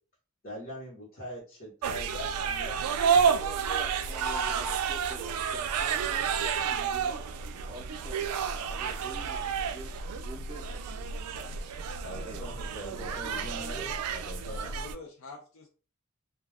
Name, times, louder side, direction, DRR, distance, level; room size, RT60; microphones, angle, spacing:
voice 1, 0.4-2.9 12.0-14.7, equal, 40° left, -7 dB, 1.0 m, -42 dB
sound 1, 1.8-14.9, right 6 dB, 90° right, 0.3 m, -30 dB
voice 2, 3.1-9.4 9.7-11.1 11.3-11.5 12.1-12.6 12.9-13.5 13.8-14.2, right 2 dB, 20° right, -1 dB, 0.5 m, -46 dB
voice 3, 14.4-15.7, left 3 dB, 70° left, -1 dB, 0.5 m, -46 dB
2.3 x 2.2 x 3.3 m, 0.37 s
head